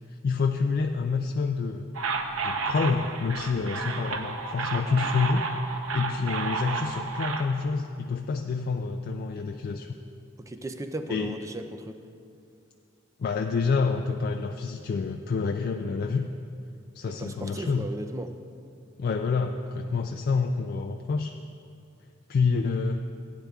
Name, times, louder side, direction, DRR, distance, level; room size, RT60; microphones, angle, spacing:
voice 1, 0.2-1.9 2.4-5.4 5.9-9.9 11.1-11.4 13.2-16.3 17.0-17.9 19.0-21.4 22.3-23.1, left 4 dB, 50° left, 4 dB, 0.3 m, -27 dB
sound 1, 1.9-7.4, right 4 dB, 85° right, 0.7 m, -31 dB
voice 2, 10.4-12.0 17.1-18.3, right 1 dB, 15° right, 8 dB, 0.4 m, -36 dB
15.0 x 9.4 x 2.3 m, 2.5 s
head